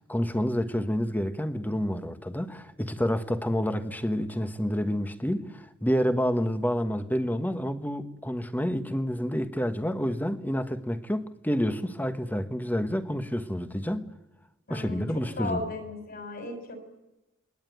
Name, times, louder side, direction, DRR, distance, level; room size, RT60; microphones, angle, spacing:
voice 1, 0.0-14.1 14.7-15.6, equal, 10° left, 1.4 m, -29 dB
voice 2, 14.7-15.0 15.4-16.8, left 2 dB, 50° left, 6.5 m, -35 dB
27.5 x 21.5 x 9.5 m
head